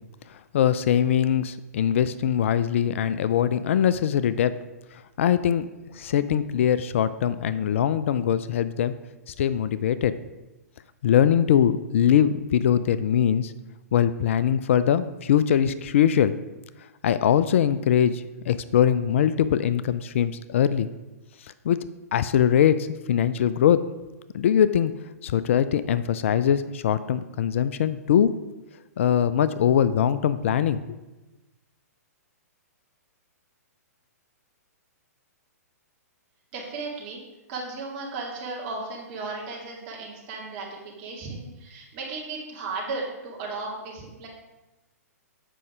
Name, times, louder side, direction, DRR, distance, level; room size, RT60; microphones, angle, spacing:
voice 1, 0.3-4.6 4.9-5.7 5.9-8.9 9.3-10.2 11.0-13.5 13.9-16.3 17.0-20.9 21.4-21.9 22.1-23.8 24.3-24.9 25.2-28.3 29.0-31.0, left 9 dB, 50° left, 14 dB, 0.3 m, -22 dB
voice 2, 36.5-37.2 37.5-44.3, right 3 dB, 40° right, -2 dB, 2.3 m, -35 dB
7.6 x 5.3 x 4.9 m, 1.1 s
figure-of-eight pair, 115°, 9 cm